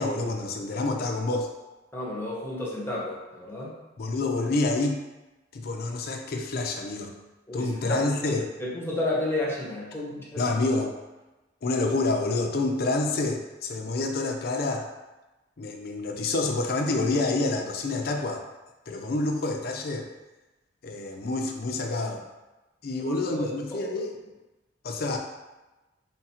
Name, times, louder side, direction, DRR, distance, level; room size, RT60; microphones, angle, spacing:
voice 1, 0.0-1.5 4.0-5.0 5.5-7.1 7.5-8.4 10.4-10.9 11.6-14.9 15.6-18.4 18.9-20.1 20.8-22.2 22.8-24.1 24.8-25.2, left 2 dB, 55° left, 3 dB, 0.5 m, -28 dB
voice 2, 1.9-3.7 7.5-8.3 8.6-10.4 23.0-23.9, left 1 dB, 15° left, -5 dB, 0.8 m, -32 dB
3.7 x 2.4 x 4.2 m, 1.1 s
head